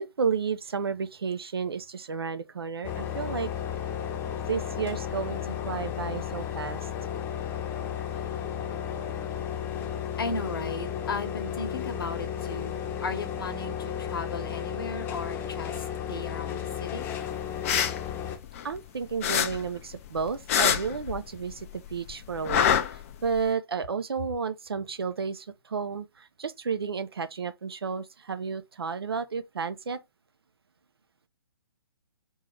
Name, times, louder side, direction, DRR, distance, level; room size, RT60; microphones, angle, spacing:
voice 1, 0.0-3.5 4.5-6.9 18.6-22.6 22.9-30.0, right 6 dB, 70° right, 0.7 m, -32 dB
sound 1, 2.8-18.4, left 9 dB, 15° left, 0.8 m, -33 dB
voice 2, 10.2-13.7 14.0-15.7 16.1-17.0, left 3 dB, 65° left, 1.1 m, -35 dB
sound 2, 17.5-18.9 19.2-21.6 21.9-23.5, left 8 dB, 35° left, 0.5 m, -26 dB
3.9 x 2.7 x 3.2 m
figure-of-eight pair, 130°, 13 cm